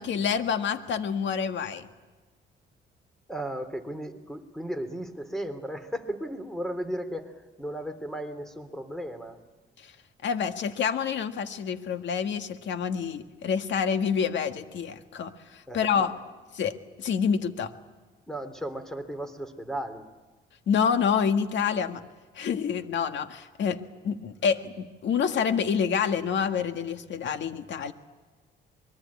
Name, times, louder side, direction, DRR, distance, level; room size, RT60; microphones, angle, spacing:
voice 1, 0.0-1.9 9.8-9.9 10.2-16.1 16.6-17.7 20.7-22.0 22.4-23.8 24.0-27.9, left 7 dB, 65° left, 8 dB, 1.7 m, -27 dB
voice 2, 3.3-9.4 15.7-16.1 18.3-20.1, right 1 dB, ahead, 9 dB, 3.2 m, -35 dB
25.0 x 22.5 x 8.6 m, 1.2 s
cardioid pair, 90°, 20 cm